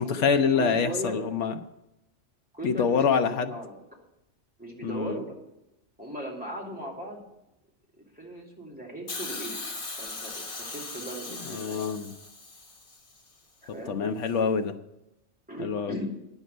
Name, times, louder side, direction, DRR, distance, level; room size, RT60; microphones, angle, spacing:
voice 1, 0.0-1.6 2.6-3.5 4.8-5.2 11.5-12.1 13.9-14.7 15.6-16.0, left 6 dB, 90° left, 7 dB, 1.1 m, -26 dB
voice 2, 0.5-1.2 2.5-3.7 4.6-5.3 6.0-7.2 8.0-9.6 10.0-11.8 13.6-14.0 15.5-16.1, right 1 dB, 5° right, -2 dB, 2.5 m, -38 dB
Hiss, 9.1-13.2 14.2-14.3, left 3 dB, 50° left, 1.5 m, -39 dB
9.8 x 7.0 x 7.8 m, 0.88 s
omnidirectional pair, 1.2 m